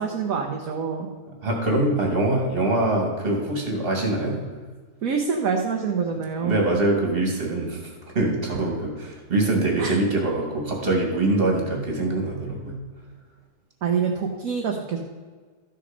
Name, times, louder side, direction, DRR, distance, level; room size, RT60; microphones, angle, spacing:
voice 1, 0.0-1.1 5.0-6.7 9.8-10.0 13.8-15.0, right 5 dB, 55° right, 2 dB, 1.2 m, -26 dB
voice 2, 1.3-4.4 6.4-12.8, right 2 dB, 30° right, 0 dB, 2.4 m, -24 dB
13.0 x 6.5 x 5.2 m, 1.4 s
omnidirectional pair, 2.0 m